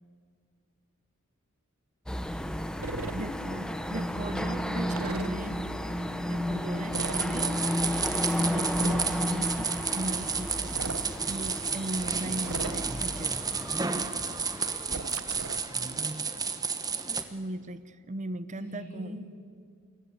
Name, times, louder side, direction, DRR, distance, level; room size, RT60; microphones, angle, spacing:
sound 1, 2.1-15.5, left 1 dB, 5° left, 1.2 m, -33 dB
sound 2, 2.8-3.2 5.0-5.3 6.9-7.3 8.3-9.1 10.6-11.1 12.4-13.0 14.9-15.7, right 3 dB, 70° right, 1.1 m, -37 dB
voice 1, 3.1-5.6 6.3-7.7 8.4-10.8 11.3-13.4 17.3-19.2, right 1 dB, 35° right, 14 dB, 0.7 m, -37 dB
voice 2, 4.7-6.2 18.6-19.3, equal, 35° left, -3 dB, 4.8 m, -42 dB
sound 3, 6.9-17.2, right 5 dB, 20° right, 1.2 m, -32 dB
28.5 x 21.5 x 8.4 m, 2.1 s
head